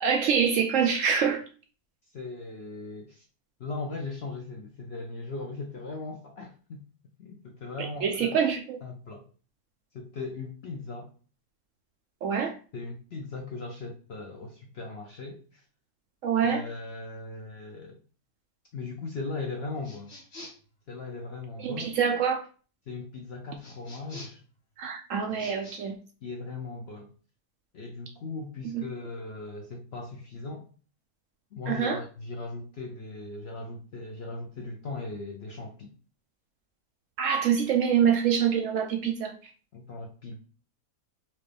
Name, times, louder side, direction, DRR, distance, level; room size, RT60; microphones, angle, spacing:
voice 1, 0.0-1.4 8.0-8.8 12.2-12.6 16.2-16.6 21.6-22.4 24.8-26.0 28.6-28.8 31.7-32.0 37.2-39.5, right 7 dB, 70° right, 0.8 m, -25 dB
voice 2, 2.1-3.3 3.6-6.8 7.2-8.4 8.8-9.3 9.9-11.1 12.7-15.6 16.4-18.0 18.7-20.1 20.9-21.9 22.9-24.4 25.3-25.4 26.2-27.1 27.7-30.7 31.5-35.9 39.7-40.4, left 3 dB, 60° left, 0.7 m, -38 dB
sound 1, 19.8-20.7 23.6-24.5 25.3-25.8, left 2 dB, 45° left, 1.4 m, -47 dB
4.4 x 2.5 x 3.3 m
omnidirectional pair, 1.7 m